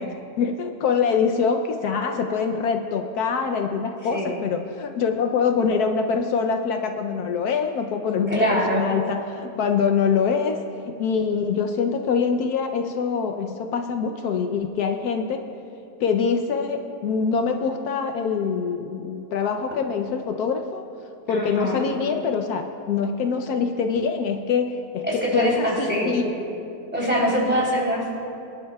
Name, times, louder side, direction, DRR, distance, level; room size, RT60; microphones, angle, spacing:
voice 1, 0.0-10.6 10.8-15.4 16.0-20.8 21.3-25.0 25.3-26.3, left 6 dB, 75° left, 5 dB, 1.1 m, -24 dB
voice 2, 4.1-4.4 8.3-8.8 21.3-21.9 25.0-26.1 26.9-28.1, equal, 5° right, -6 dB, 3.3 m, -23 dB
25.5 x 11.5 x 2.3 m, 2.7 s
omnidirectional pair, 1.7 m